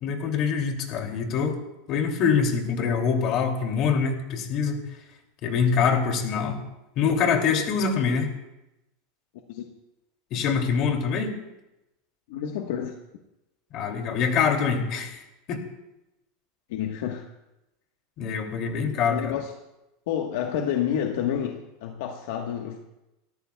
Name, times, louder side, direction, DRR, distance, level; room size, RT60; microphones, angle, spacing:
voice 1, 0.0-1.6 1.9-4.8 5.4-6.6 7.0-8.3 10.3-11.4 13.7-15.2 15.5-15.6 18.2-19.3, left 6 dB, 45° left, 3 dB, 2.7 m, -24 dB
voice 2, 12.3-13.0 16.7-17.3 19.1-19.5 20.1-22.8, left 9 dB, 70° left, 2 dB, 1.3 m, -29 dB
30.0 x 13.5 x 2.3 m, 0.93 s
supercardioid pair, 140°, 0 cm